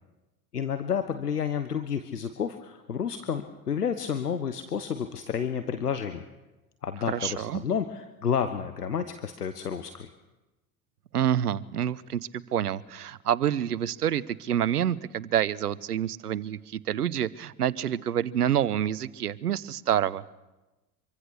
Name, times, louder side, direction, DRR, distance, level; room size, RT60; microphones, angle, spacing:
voice 1, 0.5-6.2 6.8-10.1, left 7 dB, 90° left, 9 dB, 1.3 m, -30 dB
voice 2, 7.1-7.6 11.1-20.2, right 10 dB, 85° right, 19 dB, 1.0 m, -27 dB
26.0 x 24.0 x 6.5 m, 1.1 s
figure-of-eight pair, 70°, 45 cm